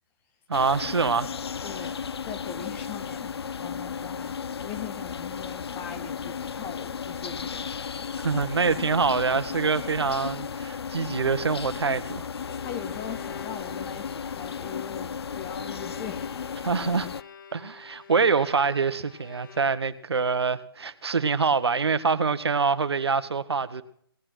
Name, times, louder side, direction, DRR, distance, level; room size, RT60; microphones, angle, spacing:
sound 1, 0.5-17.2, left 6 dB, 80° left, 0.5 m, -35 dB
voice 1, 0.5-1.3 8.2-12.3 16.6-17.1 17.5-23.8, right 5 dB, 90° right, 1.2 m, -25 dB
voice 2, 1.6-1.9 2.3-7.7 8.8-8.9 12.6-16.3, left 8 dB, 15° left, 0.8 m, -40 dB
Bowed string instrument, 12.4-20.2, left 8 dB, 50° left, 1.1 m, -47 dB
18.0 x 9.1 x 6.1 m
hypercardioid pair, 160°, 13 cm